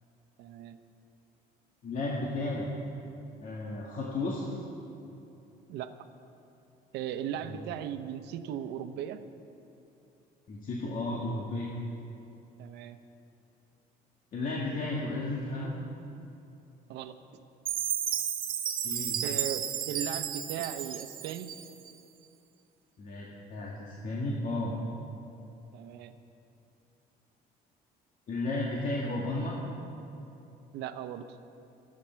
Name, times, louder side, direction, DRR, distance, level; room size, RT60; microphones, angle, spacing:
voice 1, 0.4-0.8 5.7-5.9 6.9-9.2 12.6-13.0 16.9-17.2 19.2-21.5 25.7-26.2 30.7-31.4, right 9 dB, 85° right, 10 dB, 0.8 m, -37 dB
voice 2, 1.8-2.7 3.4-4.4 7.5-7.6 10.5-11.7 14.3-15.8 18.8-19.2 23.0-24.7 28.3-29.6, left 2 dB, 50° left, -4 dB, 2.1 m, -33 dB
Chime, 17.7-21.9, right 9 dB, 55° right, 1.1 m, -33 dB
24.0 x 8.7 x 4.6 m, 2.8 s
cardioid pair, 110°, 17 cm